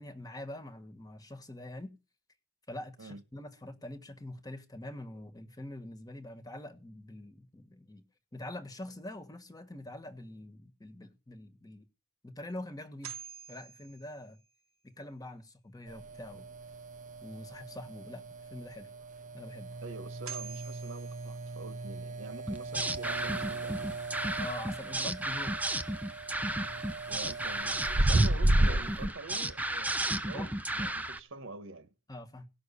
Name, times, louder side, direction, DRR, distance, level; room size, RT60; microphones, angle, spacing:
voice 1, 0.0-2.0 2.7-8.0 8.3-11.9 12.2-13.1 13.5-14.4 14.8-16.5 17.2-18.2 18.5-18.9 19.3-19.7 24.4-25.5 30.3-30.5 32.1-32.5, left 1 dB, 20° left, 1.5 m, -44 dB
sound 1, 12.8-14.9 19.9-20.0 20.3-22.2, right 8 dB, 85° right, 1.9 m, -48 dB
sound 2, 15.9-29.1, right 1 dB, 40° right, 0.8 m, -34 dB
voice 2, 19.8-23.9 25.0-25.1 27.1-31.9, right 3 dB, 70° right, 1.6 m, -46 dB
sound 3, 22.5-31.2, right 1 dB, 10° right, 0.7 m, -34 dB
18.0 x 6.4 x 8.4 m
head